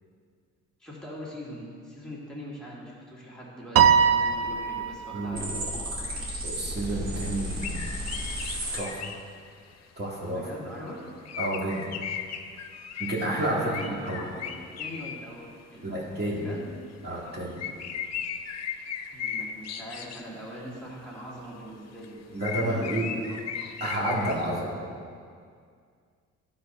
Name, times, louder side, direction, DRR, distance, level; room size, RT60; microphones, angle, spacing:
voice 1, 0.8-6.2 10.3-11.0 13.5-14.5 14.8-16.7 19.1-23.4, equal, ahead, -6 dB, 2.1 m, -42 dB
Piano, 3.8-5.3, right 7 dB, 50° right, 0.5 m, -21 dB
sound 1, 5.3-8.8, equal, 65° right, 2.5 m, -33 dB
voice 2, 6.4-7.8 8.7-9.0 10.0-10.5 11.4-11.9 13.0-14.2 15.8-16.5 17.0-17.7 22.3-23.1 23.8-24.9, right 1 dB, 35° right, -5 dB, 2.0 m, -30 dB
sound 2, 7.5-9.2 11.1-15.4 17.3-17.4 17.6-20.4 22.0-22.1 22.4-24.4, left 7 dB, 60° left, 0.7 m, -36 dB
12.0 x 4.1 x 5.4 m, 2.1 s
cardioid pair, 90°, 30 cm